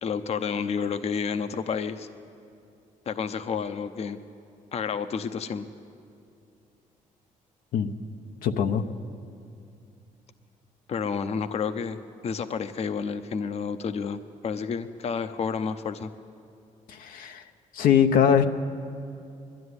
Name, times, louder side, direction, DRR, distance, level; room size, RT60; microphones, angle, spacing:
voice 1, 0.0-2.1 3.1-4.2 4.7-5.6 10.9-12.0 12.2-16.1, left 6 dB, 50° left, 9 dB, 0.8 m, -30 dB
voice 2, 8.4-8.8 16.9-17.4 17.7-18.4, left 8 dB, 85° left, 6 dB, 0.9 m, -22 dB
21.5 x 13.0 x 9.7 m, 2.5 s
cardioid pair, 115°, 14 cm